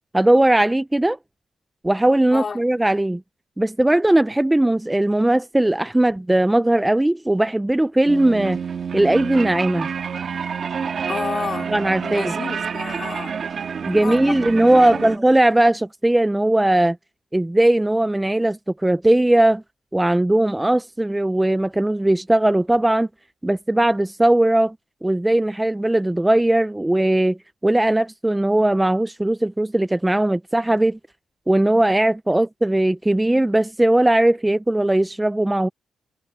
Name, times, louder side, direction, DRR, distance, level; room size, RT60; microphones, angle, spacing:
voice 1, 0.1-1.2 1.8-3.2 3.6-8.6 8.9-9.9 11.7-12.3 13.8-17.0 17.3-19.6 19.9-23.1 23.4-24.7 25.0-27.4 27.6-31.0 31.5-35.7, right 1 dB, 10° right, 0.5 m, -18 dB
voice 2, 2.3-2.6 11.1-11.7 12.0-13.4 14.0-14.4 14.8-15.2 32.4-32.5, left 5 dB, 40° left, 4.3 m, -30 dB
sound 1, 8.1-15.2, right 6 dB, 50° right, 2.3 m, -28 dB
cardioid pair, 120°, 0 cm